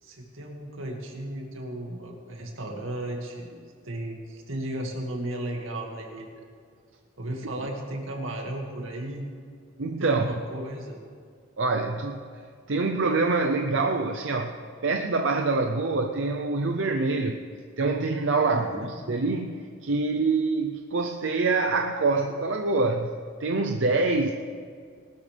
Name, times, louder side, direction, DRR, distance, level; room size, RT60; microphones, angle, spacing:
voice 1, 0.0-6.4 7.2-9.2 10.0-11.0 18.5-18.9, right 1 dB, 90° right, 1 dB, 2.1 m, -35 dB
voice 2, 9.8-10.3 11.6-12.2 12.7-17.4 17.8-24.3, right 3 dB, 70° right, 3 dB, 0.6 m, -25 dB
19.5 x 12.5 x 3.4 m, 2.1 s
head